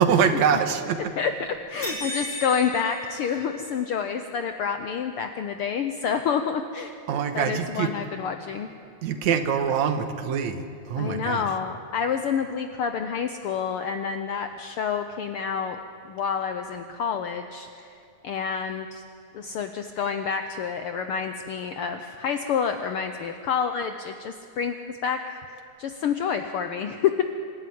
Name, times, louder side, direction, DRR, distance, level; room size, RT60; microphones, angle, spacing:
voice 1, 0.0-1.1 1.8-2.2 7.1-7.9 9.0-11.5, right 7 dB, 75° right, 8 dB, 2.4 m, -24 dB
voice 2, 1.7-6.9 7.3-8.7 11.0-15.8 16.1-17.9 18.2-19.0 19.3-25.4 25.8-27.2, left 7 dB, 75° left, 7 dB, 1.3 m, -28 dB
sound 1, 1.8-4.0, left 1 dB, 55° left, 5.9 m, -35 dB
25.5 x 13.0 x 9.4 m, 2.4 s
omnidirectional pair, 3.3 m